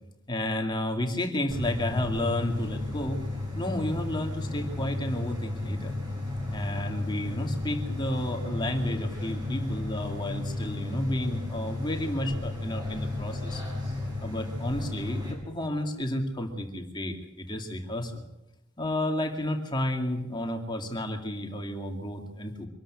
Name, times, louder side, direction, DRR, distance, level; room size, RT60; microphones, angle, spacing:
voice 1, 0.3-3.2 3.5-5.9 6.5-13.6 14.2-18.2 18.8-22.7, left 1 dB, 20° left, 3 dB, 2.4 m, -31 dB
sound 1, 1.5-15.3, left 2 dB, 20° right, 7.3 m, -33 dB
25.0 x 12.5 x 9.0 m, 0.95 s
head